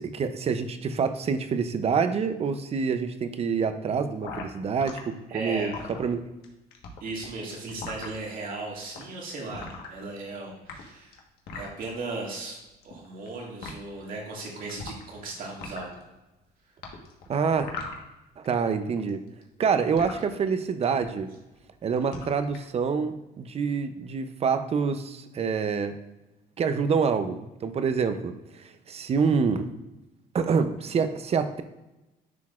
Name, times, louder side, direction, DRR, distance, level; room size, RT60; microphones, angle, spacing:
voice 1, 0.0-5.7 6.0-6.2 17.3-17.7 18.4-19.2 19.6-21.3 21.8-26.0 26.6-29.7 30.3-31.6, right 5 dB, 35° right, 10 dB, 0.6 m, -26 dB
sound 1, 4.2-5.0 5.5-6.5 6.7-8.2 8.8-9.0 9.5-10.3 10.6-11.8 12.7-13.3 13.6-13.7 14.7-15.2 15.5-16.0 16.8-18.5 18.7-20.2 20.8-21.1 21.3-21.7 22.0-22.6, left 4 dB, 70° left, 1.3 m, -39 dB
voice 2, 5.3-5.7 7.0-11.2 11.5-12.6 12.8-15.9, right 3 dB, 55° right, -2 dB, 2.1 m, -36 dB
10.5 x 3.9 x 2.4 m, 1.0 s
cardioid pair, 110°, 17 cm